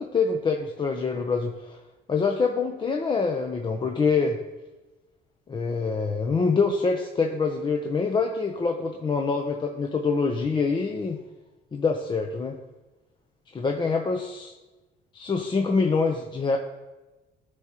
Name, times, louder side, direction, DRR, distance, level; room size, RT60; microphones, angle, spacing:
voice 1, 0.0-1.8 2.1-4.4 5.5-11.2 11.7-12.6 13.5-14.5 15.1-16.6, left 4 dB, 30° left, 3 dB, 0.6 m, -25 dB
13.0 x 4.9 x 2.9 m, 1.1 s
cardioid pair, 110°, 17 cm